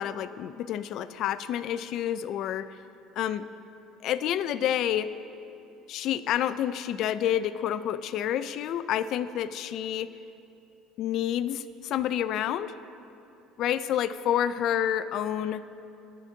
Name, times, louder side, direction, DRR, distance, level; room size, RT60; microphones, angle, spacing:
voice 1, 0.0-2.7 3.2-3.5 4.0-5.1 5.9-10.1 11.0-12.7 13.6-15.6, left 10 dB, 55° left, 14 dB, 0.3 m, -29 dB
20.5 x 9.3 x 2.7 m, 2.8 s
cardioid pair, 130°, 0 cm